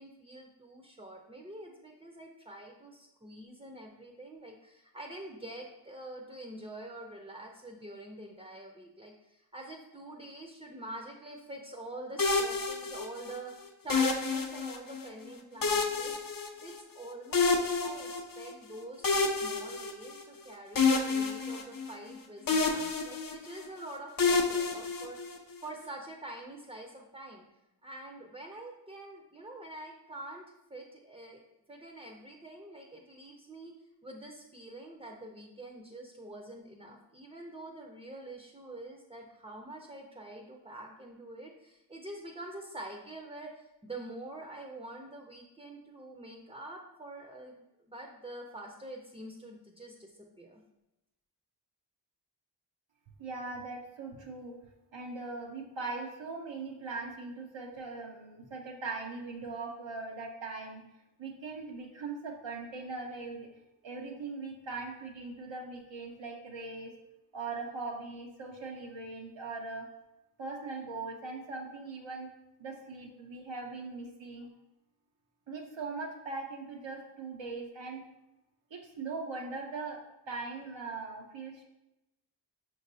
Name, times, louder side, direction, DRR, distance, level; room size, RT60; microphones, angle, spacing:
voice 1, 0.0-27.5 27.8-31.4 31.7-33.7 34.0-47.6 47.8-50.6, right 1 dB, 15° right, 1 dB, 0.5 m, -46 dB
sound 1, 12.2-13.4 13.9-15.0 15.6-17.0 17.3-18.5 19.0-20.4 20.8-22.2 22.5-23.7 24.2-25.5, left 4 dB, 50° left, 0.5 m, -29 dB
voice 2, 53.2-54.6 54.9-60.8 61.2-66.9 67.3-69.9 70.4-72.3 72.6-74.5 75.5-78.0 78.7-81.6, right 3 dB, 85° right, 0 dB, 0.6 m, -40 dB
5.8 x 3.1 x 2.7 m, 0.92 s
wide cardioid pair, 45°, 44 cm